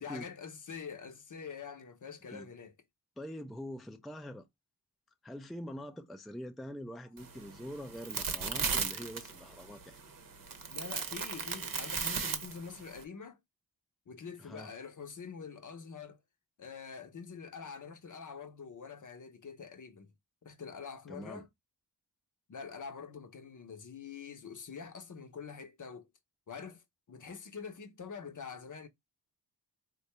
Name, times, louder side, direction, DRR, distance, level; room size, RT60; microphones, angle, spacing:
voice 1, 0.0-2.7 10.7-13.4 14.1-16.2 16.6-20.1 20.4-21.5 22.5-26.1 26.5-28.9, left 6 dB, 45° left, 0.8 m, -45 dB
voice 2, 3.2-4.5 5.2-10.0 14.4-14.7 21.1-21.4, equal, ahead, 0.4 m, -44 dB
sound 1, 7.2-13.0, right 5 dB, 50° right, 0.8 m, -37 dB
3.8 x 2.3 x 2.9 m
cardioid pair, 45°, 42 cm